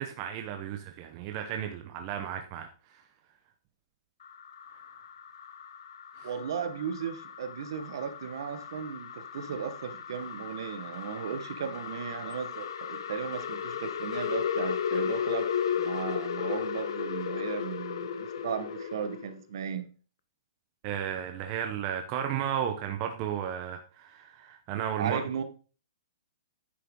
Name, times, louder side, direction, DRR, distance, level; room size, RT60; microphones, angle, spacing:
voice 1, 0.0-3.0 6.1-6.3 20.8-25.2, right 9 dB, 30° right, 5 dB, 1.0 m, -34 dB
sound 1, 4.2-19.3, left 8 dB, 60° left, 1.0 m, -35 dB
voice 2, 6.2-15.5 15.7-19.9 25.0-25.4, right 7 dB, 55° right, 9 dB, 1.5 m, -36 dB
9.6 x 6.7 x 3.9 m, 0.37 s
hypercardioid pair, 160°, 3 cm